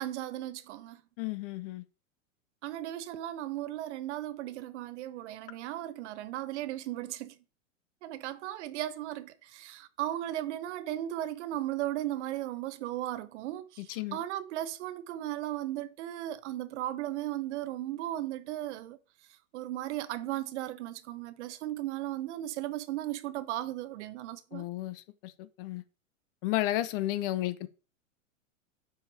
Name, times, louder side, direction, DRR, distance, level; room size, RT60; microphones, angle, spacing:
voice 1, 0.0-1.0 2.6-7.4 8.0-19.0 19.5-24.7, right 14 dB, 60° right, 0.7 m, -36 dB
voice 2, 1.2-1.8 13.9-14.2 24.5-25.8 26.4-27.7, left 15 dB, 45° left, 0.6 m, -33 dB
7.6 x 5.0 x 2.7 m
hypercardioid pair, 125°, 41 cm